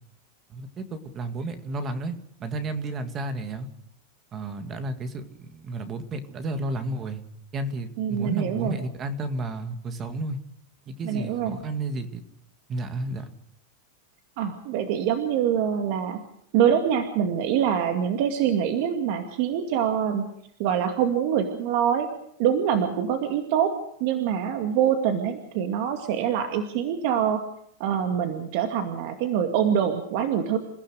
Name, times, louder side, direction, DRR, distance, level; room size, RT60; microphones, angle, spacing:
voice 1, 0.5-3.7 4.3-7.2 7.5-10.4 10.9-12.2 12.7-13.3, right 2 dB, 20° right, 9 dB, 2.1 m, -32 dB
voice 2, 8.0-8.8 11.0-11.6 14.4-16.2 16.5-20.2 20.6-22.1 22.4-23.7 24.0-27.4 27.8-30.6, right 8 dB, 45° right, 6 dB, 2.3 m, -24 dB
28.5 x 16.0 x 6.5 m, 0.70 s
supercardioid pair, 175°, 0 cm